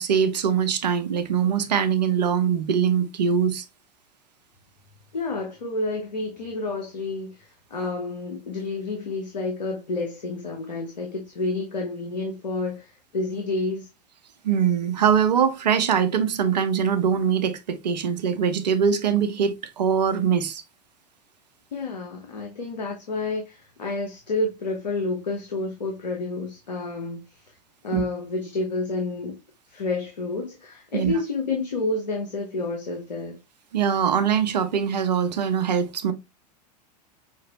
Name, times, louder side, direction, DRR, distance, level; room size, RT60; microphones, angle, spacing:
voice 1, 0.0-3.6 14.4-20.6 27.9-28.0 30.9-31.1 33.7-36.1, right 7 dB, 75° right, 0.8 m, -22 dB
voice 2, 5.1-13.9 21.7-27.2 27.8-29.4 29.7-33.4, left 3 dB, 85° left, 1.2 m, -29 dB
5.7 x 2.9 x 2.9 m
hypercardioid pair, 90°, 21 cm